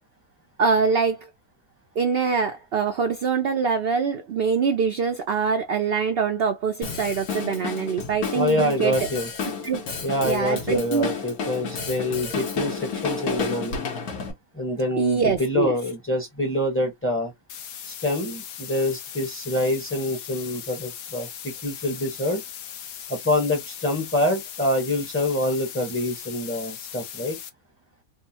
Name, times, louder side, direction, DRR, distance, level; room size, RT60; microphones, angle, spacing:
voice 1, 0.6-1.3 2.0-8.9 9.6-9.8 10.2-11.1 15.0-15.7, right 5 dB, 65° right, 0.6 m, -24 dB
Drum kit, 6.8-14.3, left 5 dB, 90° left, 1.5 m, -31 dB
voice 2, 8.3-9.3 10.0-13.8 14.5-17.3 17.9-22.4 23.1-27.4, left 1 dB, 10° left, 0.7 m, -26 dB
sound 1, 17.5-27.5, left 9 dB, 75° left, 1.1 m, -39 dB
3.6 x 2.0 x 2.7 m
omnidirectional pair, 1.5 m